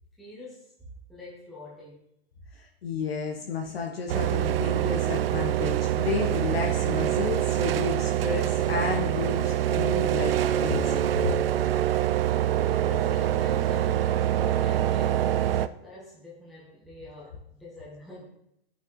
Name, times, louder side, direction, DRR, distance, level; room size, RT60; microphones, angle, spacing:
voice 1, 0.2-2.0 12.6-18.2, left 1 dB, ahead, -8 dB, 0.6 m, -44 dB
voice 2, 2.5-11.0, left 5 dB, 70° left, 1 dB, 1.3 m, -32 dB
sound 1, 4.1-15.7, right 12 dB, 65° right, 0.4 m, -25 dB
11.0 x 5.9 x 3.1 m, 0.78 s
hypercardioid pair, 170°, 31 cm